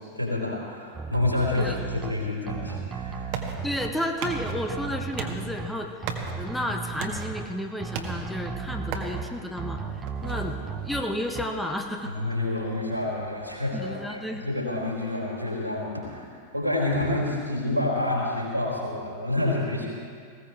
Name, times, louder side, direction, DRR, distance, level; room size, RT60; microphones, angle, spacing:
voice 1, 0.1-3.4 10.2-10.5 12.0-16.3 16.5-19.9, left 2 dB, 90° right, -3 dB, 4.2 m, -28 dB
sound 1, 0.9-2.1 2.5-3.9 4.2-5.7 6.0-7.5 7.8-9.2 9.6-11.0 11.3-11.5, right 5 dB, 20° right, 1.1 m, -35 dB
sound 2, 2.6-14.1, right 5 dB, 45° right, 1.7 m, -41 dB
voice 2, 3.6-5.9 6.4-12.1 13.7-14.4, left 1 dB, 5° left, 2 dB, 1.2 m, -32 dB
20.0 x 16.5 x 3.5 m, 2.2 s
figure-of-eight pair, 90°, 0 cm